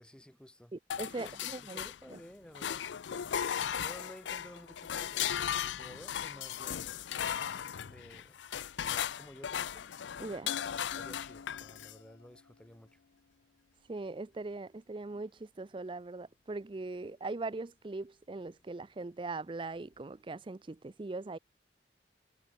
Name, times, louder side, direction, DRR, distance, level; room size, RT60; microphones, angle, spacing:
voice 1, 0.0-0.8 1.2-2.9 3.8-6.9 7.8-8.4 8.8-9.9 10.7-13.0, equal, 5° left, 0.8 m, -53 dB
voice 2, 0.7-2.2 10.2-10.6 13.9-21.4, right 3 dB, 30° right, 0.5 m, -40 dB
sound 1, 0.9-2.2 2.6-12.0, left 9 dB, 85° left, 0.5 m, -37 dB
head